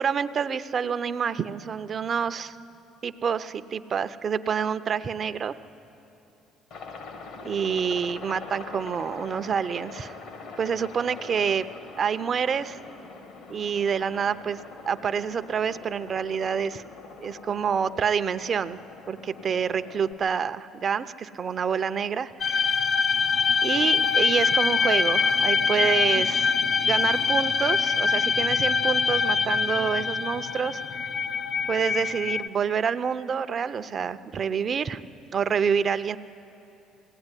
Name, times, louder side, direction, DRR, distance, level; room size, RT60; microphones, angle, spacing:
voice 1, 0.0-2.6 3.0-5.5 7.4-10.2 10.6-11.7 12.0-12.8 13.5-14.6 14.9-16.8 17.2-18.8 19.1-22.6 23.6-26.6 26.9-30.8 31.7-35.0 35.3-36.2, right 7 dB, 40° right, 12 dB, 0.6 m, -27 dB
Aircraft, 6.7-20.1, left 4 dB, 65° left, 1.9 m, -43 dB
sound 1, 22.4-32.5, left 5 dB, 45° left, 0.6 m, -24 dB
21.0 x 17.0 x 9.8 m, 2.9 s
cardioid pair, 110°, 0 cm